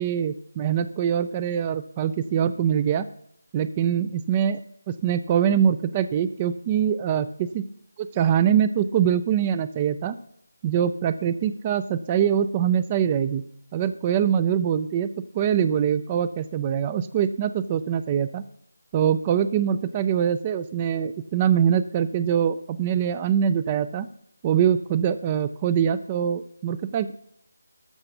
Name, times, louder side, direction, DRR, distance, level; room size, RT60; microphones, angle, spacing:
voice 1, 0.0-3.1 3.5-4.6 4.9-7.6 8.0-10.2 10.6-13.4 13.7-15.1 15.3-18.4 18.9-24.1 24.4-27.1, right 8 dB, 15° right, 13 dB, 0.3 m, -23 dB
13.5 x 5.8 x 6.6 m, 0.70 s
figure-of-eight pair, 170°, 0 cm